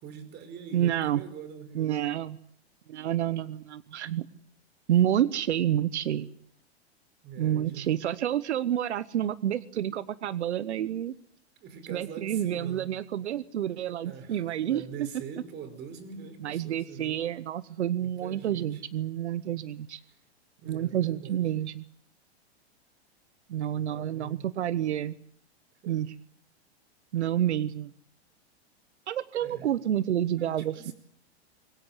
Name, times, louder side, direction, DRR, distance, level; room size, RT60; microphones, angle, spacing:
voice 1, 0.0-2.1 7.2-7.9 11.6-12.9 14.0-17.2 18.0-18.8 20.6-21.5 23.7-24.4 25.8-26.0 29.4-29.7 30.4-30.9, right 7 dB, 30° right, 11 dB, 5.0 m, -43 dB
voice 2, 0.7-1.2 1.7-2.4 2.9-4.3 4.9-6.3 7.4-11.1 11.9-15.1 16.4-20.0 20.7-21.9 23.5-25.2 25.9-26.1 27.1-27.9 29.1-30.9, right 11 dB, 85° right, 17 dB, 1.0 m, -29 dB
23.0 x 19.0 x 9.6 m, 0.65 s
hypercardioid pair, 135°, 33 cm